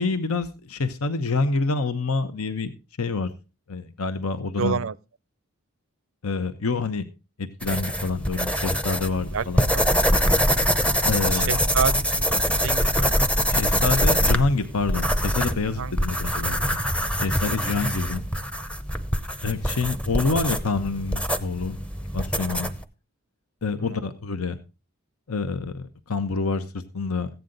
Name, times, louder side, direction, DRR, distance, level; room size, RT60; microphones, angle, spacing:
voice 1, 0.0-2.7 3.0-3.3 3.7-4.8 6.2-7.0 7.4-9.7 11.1-11.6 13.5-16.9 17.2-18.2 19.4-21.8 22.1-22.7 23.6-24.6 25.3-27.3, left 4 dB, 75° left, 1.0 m, -27 dB
voice 2, 4.6-5.0 9.3-9.5 9.7-10.0 11.3-13.4 15.7-15.9 22.4-22.7 23.9-24.0, right 6 dB, 60° right, 0.5 m, -29 dB
sound 1, 7.6-22.8, equal, 5° left, 0.7 m, -24 dB
15.0 x 9.3 x 3.9 m
head